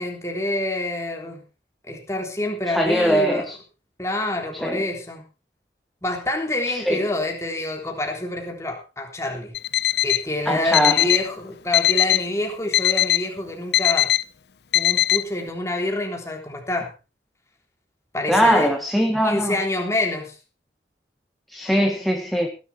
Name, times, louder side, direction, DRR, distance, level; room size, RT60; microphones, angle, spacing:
voice 1, 0.0-1.4 1.9-3.5 4.0-5.2 6.0-9.5 10.0-14.1 14.7-16.9 18.1-18.7 19.2-20.3, left 1 dB, 15° left, 2 dB, 3.6 m, -27 dB
voice 2, 2.7-3.5 4.6-4.8 6.7-7.1 10.5-11.1 18.3-19.6 21.5-22.5, equal, ahead, 2 dB, 1.5 m, -21 dB
Alarm, 9.5-10.2 10.7-11.3 11.7-12.3 12.7-13.3 13.7-14.2 14.7-15.2, left 14 dB, 65° left, 0.7 m, -20 dB
18.0 x 11.0 x 4.4 m, 0.34 s
head